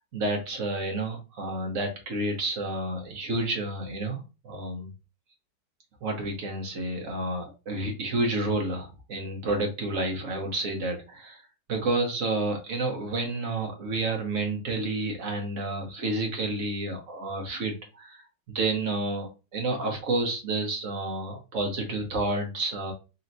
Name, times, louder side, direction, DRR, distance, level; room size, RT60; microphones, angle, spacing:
voice 1, 0.1-4.9 6.0-11.4 11.7-18.2 18.5-22.9, right 2 dB, 50° right, 2 dB, 1.2 m, -30 dB
4.1 x 2.7 x 2.7 m, 0.30 s
omnidirectional pair, 1.9 m